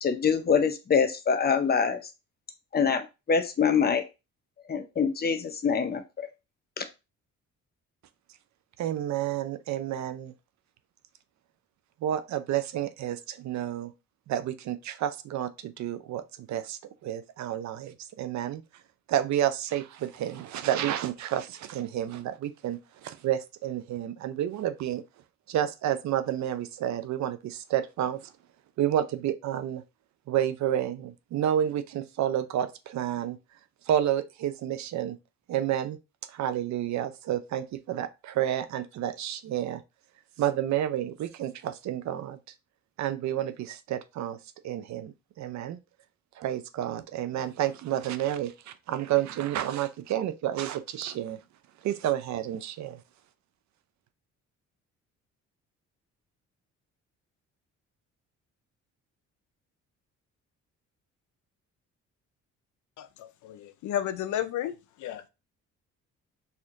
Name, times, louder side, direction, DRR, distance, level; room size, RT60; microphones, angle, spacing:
voice 1, 0.0-2.0 2.7-4.0 4.7-6.3 6.8-6.9, left 6 dB, 30° left, 0.7 m, -25 dB
voice 2, 8.8-10.3 12.0-13.9 14.3-18.6 19.1-25.0 25.5-28.3 28.8-29.8 30.3-33.4 33.9-35.2 35.5-36.0 36.3-39.8 40.4-42.4 43.0-44.4 44.6-45.8 46.4-51.4 51.8-53.0, right 11 dB, 65° right, 0.5 m, -30 dB
voice 3, 63.0-65.3, left 11 dB, 75° left, 0.5 m, -33 dB
4.2 x 2.8 x 2.5 m
cardioid pair, 90°, 30 cm